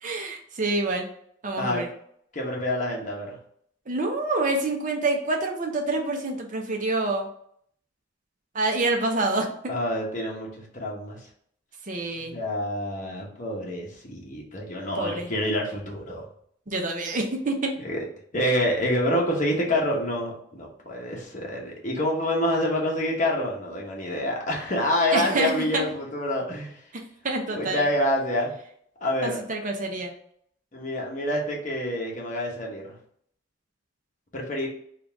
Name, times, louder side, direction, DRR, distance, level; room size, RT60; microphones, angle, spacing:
voice 1, 0.0-1.1 1.4-1.9 3.9-7.3 8.5-9.5 11.9-12.4 15.0-15.3 16.7-17.7 25.1-25.8 26.9-27.8 29.2-30.1, right 2 dB, 40° right, 2 dB, 0.6 m, -27 dB
voice 2, 2.3-3.4 9.7-11.2 12.3-16.2 17.8-18.0 18.3-26.8 27.5-28.5 29.0-29.4 30.7-33.0 34.3-34.7, left 1 dB, 40° left, -1 dB, 1.0 m, -27 dB
3.9 x 2.4 x 3.4 m, 0.66 s
head